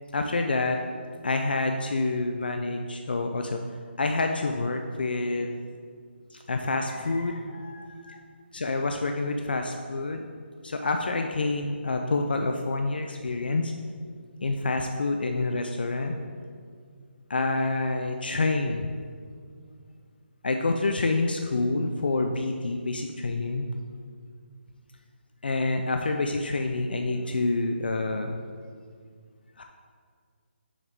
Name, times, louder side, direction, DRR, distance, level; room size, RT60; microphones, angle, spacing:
voice 1, 0.1-0.8 1.2-3.6 4.0-5.5 6.3-8.2 8.5-10.2 10.6-13.7 14.4-16.2 17.3-18.9 20.4-23.7 25.4-28.4 29.6-29.7, left 3 dB, 55° left, 4 dB, 0.4 m, -27 dB
6.4 x 5.7 x 3.5 m, 2.1 s
hypercardioid pair, 180°, 6 cm